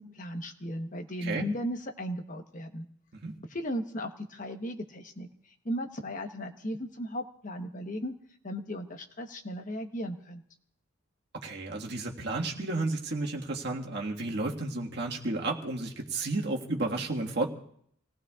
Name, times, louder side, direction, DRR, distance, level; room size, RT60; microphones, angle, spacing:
voice 1, 0.0-2.9 3.5-8.2 8.4-10.4, equal, 40° left, 6 dB, 1.1 m, -36 dB
voice 2, 11.4-17.5, right 2 dB, 60° right, 0 dB, 1.7 m, -32 dB
28.0 x 18.0 x 2.4 m, 0.66 s
head